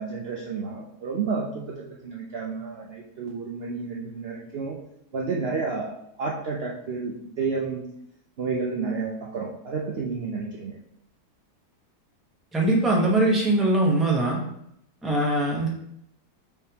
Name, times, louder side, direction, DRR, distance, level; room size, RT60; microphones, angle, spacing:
voice 1, 0.0-4.8 5.1-7.9 8.4-10.7, right 4 dB, 75° right, -1 dB, 0.5 m, -31 dB
voice 2, 12.5-14.4 15.0-15.7, right 1 dB, ahead, -3 dB, 0.5 m, -21 dB
4.4 x 3.5 x 2.8 m, 0.74 s
omnidirectional pair, 1.7 m